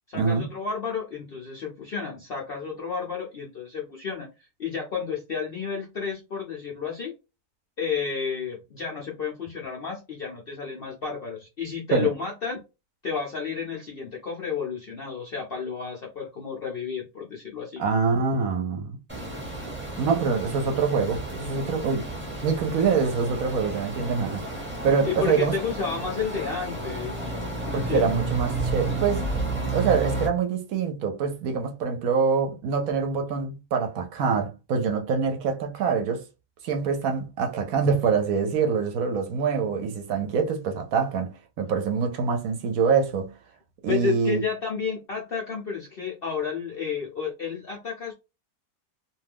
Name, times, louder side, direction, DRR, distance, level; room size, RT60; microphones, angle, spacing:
voice 1, 0.1-7.1 7.8-12.6 13.0-17.8 25.0-27.3 27.7-28.0 43.9-48.1, left 6 dB, 60° left, 0.6 m, -31 dB
voice 2, 17.8-19.0 20.0-22.1 22.4-24.5 24.8-25.5 27.7-29.3 29.7-36.2 36.6-43.3 43.8-44.4, right 5 dB, 70° right, 1.0 m, -25 dB
sound 1, 19.1-30.3, right 2 dB, 10° right, 0.9 m, -31 dB
2.6 x 2.3 x 3.4 m
omnidirectional pair, 1.7 m